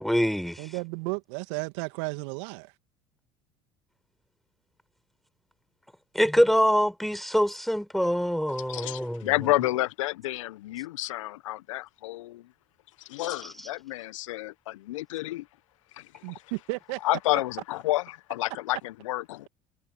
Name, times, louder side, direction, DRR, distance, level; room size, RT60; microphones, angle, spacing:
voice 1, 0.0-0.6 6.1-9.3, equal, ahead, 4.8 m, -24 dB
voice 2, 0.6-2.7 16.2-17.0, right 30 dB, 65° right, 2.6 m, -33 dB
voice 3, 8.7-12.5 13.0-15.5 15.9-16.4 17.0-19.5, left 17 dB, 75° left, 1.3 m, -30 dB
hypercardioid pair, 65°, 17 cm